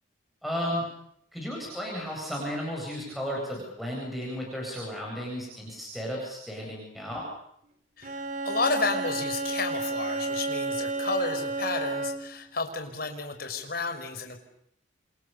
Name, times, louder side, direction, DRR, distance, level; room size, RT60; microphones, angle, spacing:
voice 1, 0.4-0.8 1.3-7.2, equal, ahead, -2 dB, 8.0 m, -34 dB
voice 2, 8.0-14.4, left 3 dB, 50° left, 5 dB, 5.4 m, -32 dB
Bowed string instrument, 8.0-12.4, right 3 dB, 40° right, 2.7 m, -31 dB
30.0 x 26.5 x 7.0 m, 0.71 s
head